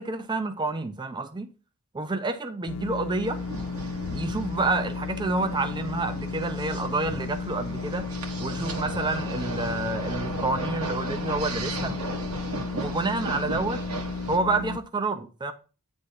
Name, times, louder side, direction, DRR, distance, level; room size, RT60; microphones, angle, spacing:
voice 1, 0.0-1.5 1.9-3.4 4.1-8.1 8.4-12.0 12.7-13.8 14.3-15.5, right 3 dB, 20° right, 0.5 m, -29 dB
sound 1, 2.7-14.8, left 4 dB, 85° left, 0.4 m, -34 dB
sound 2, 3.2-14.4, right 2 dB, 80° right, 1.6 m, -36 dB
9.1 x 3.5 x 5.4 m
head